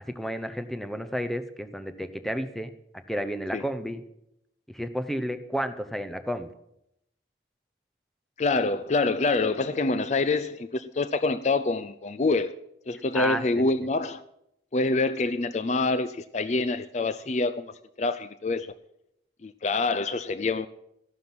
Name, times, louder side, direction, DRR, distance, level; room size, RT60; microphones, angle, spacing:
voice 1, 0.1-2.7 3.1-4.0 4.7-6.5 13.1-13.4, equal, ahead, 0.8 m, -31 dB
voice 2, 8.4-12.5 12.9-14.2 14.7-17.7 18.0-18.7 19.4-20.7, left 3 dB, 40° left, 0.4 m, -26 dB
13.5 x 11.0 x 6.0 m
head